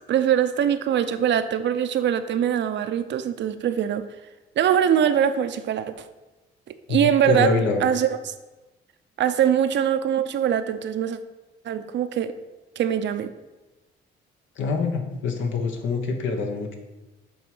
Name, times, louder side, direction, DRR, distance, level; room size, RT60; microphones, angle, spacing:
voice 1, 0.1-4.1 4.6-6.1 6.9-7.5 7.8-8.3 9.2-11.2 11.6-12.3 12.8-13.3, right 9 dB, 65° right, 10 dB, 0.6 m, -22 dB
voice 2, 6.9-7.8 14.6-16.7, left 4 dB, 75° left, 4 dB, 1.2 m, -25 dB
7.9 x 3.6 x 6.0 m, 1.1 s
cardioid pair, 90°, 20 cm